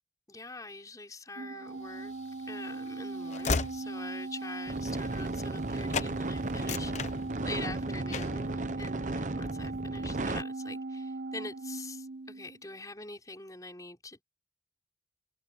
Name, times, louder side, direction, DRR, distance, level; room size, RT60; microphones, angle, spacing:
voice 1, 0.3-2.1 2.4-14.2, left 2 dB, 20° left, 5.3 m, -44 dB
Organ, 1.4-12.6, right 3 dB, 85° right, 0.8 m, -39 dB
Train / Slam, 2.0-5.7 5.9-6.1 6.5-7.7 8.1-8.4, left 4 dB, 40° left, 0.9 m, -36 dB
sound 1, 4.7-10.4, right 2 dB, 40° right, 0.9 m, -35 dB
open air
head